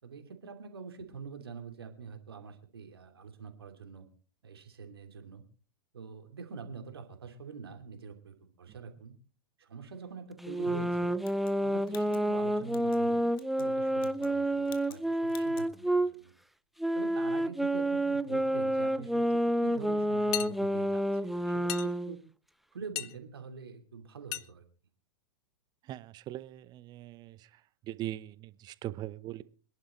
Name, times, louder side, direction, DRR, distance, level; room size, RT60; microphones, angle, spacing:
voice 1, 0.0-4.1 4.4-5.4 5.9-9.1 9.6-11.2 11.6-13.2 13.6-16.3 16.9-22.2 22.7-24.6, right 5 dB, 75° right, 2.8 m, -45 dB
sound 1, 10.4-16.1 16.8-22.2, right 1 dB, ahead, 0.6 m, -29 dB
sound 2, 11.2-13.0 13.3-13.7 14.0-14.4 14.6-15.0 15.3-15.7, left 9 dB, 65° left, 2.1 m, -53 dB
sound 3, 20.3-20.5 21.7-21.9 23.0-23.1 24.3-24.5, left 18 dB, 45° left, 0.9 m, -34 dB
voice 2, 25.9-27.5 27.8-29.4, right 14 dB, 35° right, 0.9 m, -40 dB
26.5 x 11.0 x 3.1 m
figure-of-eight pair, 100°, 13 cm